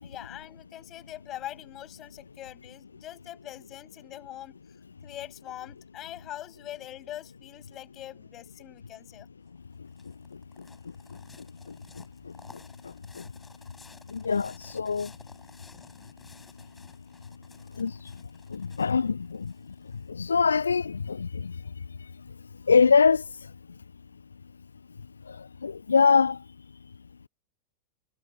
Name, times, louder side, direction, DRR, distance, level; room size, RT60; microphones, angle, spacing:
voice 1, 0.0-4.6 5.0-9.3, left 13 dB, 30° left, 5.3 m, -43 dB
sound 1, 9.5-20.3, left 4 dB, 10° left, 7.6 m, -55 dB
voice 2, 11.7-12.0 12.8-13.2 14.1-15.1 17.8-18.1 18.5-19.5 20.1-21.6 22.7-23.3 25.3-26.4, left 5 dB, 75° left, 0.3 m, -24 dB
figure-of-eight pair, 90°, 0 cm